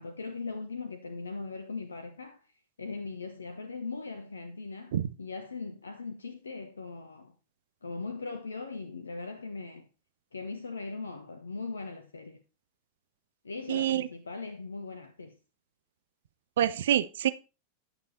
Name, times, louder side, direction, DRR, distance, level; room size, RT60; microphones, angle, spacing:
voice 1, 0.0-2.5 2.8-7.3 7.8-9.9 10.3-12.4 13.4-15.4, left 4 dB, 75° left, 1.0 m, -39 dB
voice 2, 13.7-14.1 16.6-17.3, right 11 dB, 60° right, 0.7 m, -26 dB
11.0 x 7.2 x 4.1 m
figure-of-eight pair, 90°, 0 cm